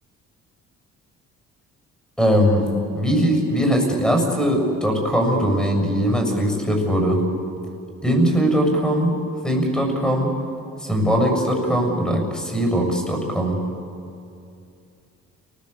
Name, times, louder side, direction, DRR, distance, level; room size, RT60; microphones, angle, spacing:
voice 1, 2.2-2.7 2.9-7.2 8.0-9.1 9.4-10.3 10.8-13.6, equal, 5° left, 3 dB, 7.2 m, -20 dB
29.0 x 20.0 x 8.4 m, 2.5 s
cardioid pair, 90°, 30 cm